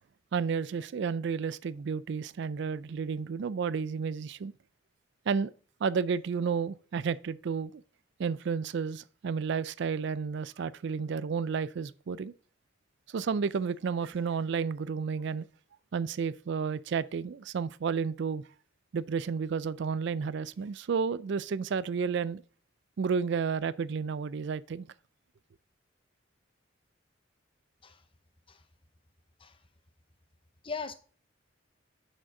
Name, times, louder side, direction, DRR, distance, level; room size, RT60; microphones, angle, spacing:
voice 1, 0.3-4.5 5.3-5.5 5.8-7.8 8.2-12.3 13.1-15.5 15.9-18.4 18.9-22.4 23.0-24.9, right 6 dB, 65° right, 0.4 m, -31 dB
voice 2, 30.6-30.9, left 4 dB, 30° left, 0.8 m, -38 dB
7.5 x 6.6 x 3.7 m
head